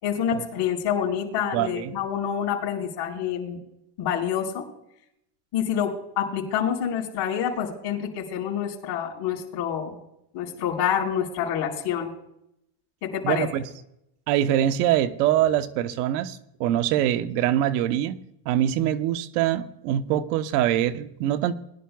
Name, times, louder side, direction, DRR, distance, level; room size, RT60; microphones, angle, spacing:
voice 1, 0.0-3.6 4.0-4.6 5.5-10.0 10.3-12.1 13.0-13.5, left 8 dB, 55° left, 4.3 m, -27 dB
voice 2, 1.5-1.9 13.2-13.7 14.3-18.2 18.4-21.5, right 11 dB, 70° right, 1.0 m, -24 dB
21.5 x 11.5 x 2.3 m
supercardioid pair, 125°, 48 cm